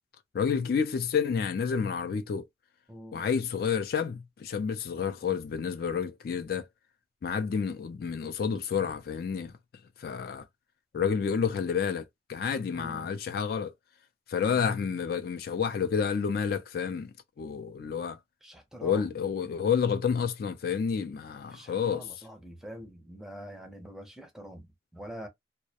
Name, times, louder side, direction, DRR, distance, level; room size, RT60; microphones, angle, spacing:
voice 1, 0.3-2.5 3.1-6.7 7.2-9.5 10.0-10.5 10.9-13.7 14.3-17.1 17.4-18.2 18.8-22.0, left 6 dB, 55° left, 0.3 m, -29 dB
voice 2, 2.9-3.3 12.7-13.1 18.4-19.1 21.5-25.3, equal, 5° right, 0.5 m, -45 dB
2.2 x 2.0 x 2.7 m
head